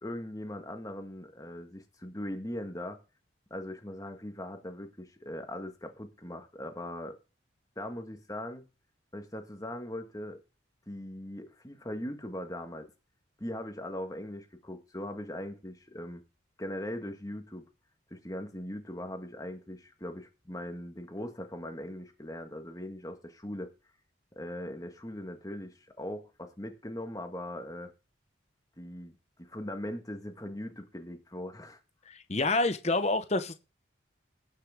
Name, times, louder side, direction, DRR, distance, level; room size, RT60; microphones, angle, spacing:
voice 1, 0.0-3.0 3.5-7.2 7.8-8.6 9.1-10.4 10.9-12.9 13.4-16.2 16.6-17.7 18.1-23.7 24.4-27.9 28.8-31.8, left 1 dB, 20° left, 1.7 m, -40 dB
voice 2, 32.1-33.5, left 2 dB, 35° left, 0.9 m, -28 dB
18.5 x 6.5 x 3.6 m
head